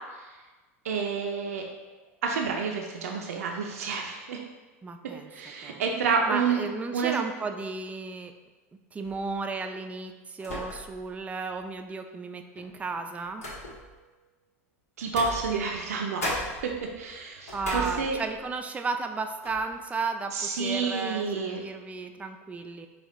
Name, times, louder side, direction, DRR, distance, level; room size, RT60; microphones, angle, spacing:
voice 1, 0.8-1.7 2.2-4.4 5.3-6.7 6.9-7.2 15.0-16.3 16.6-18.2 20.3-21.6, right 5 dB, 85° right, 2 dB, 0.4 m, -29 dB
voice 2, 4.8-5.3 5.6-5.8 6.3-8.3 8.9-13.4 17.5-22.9, right 4 dB, 20° right, 6 dB, 0.3 m, -34 dB
sound 1, 9.0-9.4 10.4-11.1 11.5-11.6 12.5-14.0 15.0-15.9 16.2-18.5 19.0-19.1 19.4-19.8, equal, 85° left, 1.1 m, -37 dB
4.3 x 2.3 x 3.5 m, 1.2 s
hypercardioid pair, 95°, 8 cm